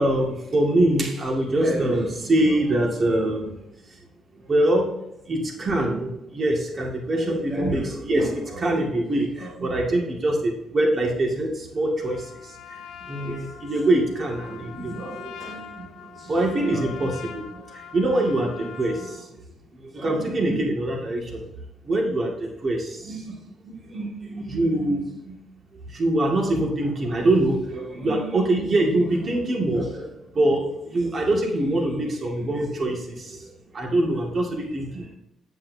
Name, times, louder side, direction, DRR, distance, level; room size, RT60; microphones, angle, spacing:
voice 1, 0.0-3.6 4.4-4.9 5.3-19.4 19.7-21.4 21.8-23.3 23.6-25.4 25.9-35.1, right 1 dB, 40° right, 0 dB, 2.1 m, -24 dB
Trumpet, 12.0-19.2, left 7 dB, 85° left, 0.9 m, -42 dB
8.5 x 8.5 x 2.8 m, 0.86 s
cardioid pair, 90°, 0 cm